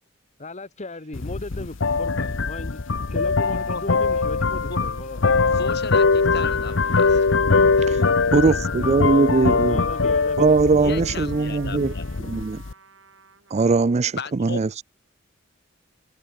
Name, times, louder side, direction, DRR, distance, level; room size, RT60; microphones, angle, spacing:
voice 1, 0.4-2.8 3.1-5.2 8.7-9.3 9.6-10.5, left 2 dB, 35° left, 1.4 m, -36 dB
sound 1, 1.1-12.7, left 4 dB, 75° left, 0.9 m, -22 dB
voice 2, 5.5-7.3 10.8-12.1 14.1-14.6, left 4 dB, 60° left, 4.9 m, -34 dB
Trumpet, 5.9-13.8, right 5 dB, 80° right, 3.8 m, -50 dB
voice 3, 8.3-9.8 10.4-11.9 12.2-12.6 13.5-14.7, right 3 dB, 35° right, 0.4 m, -20 dB
head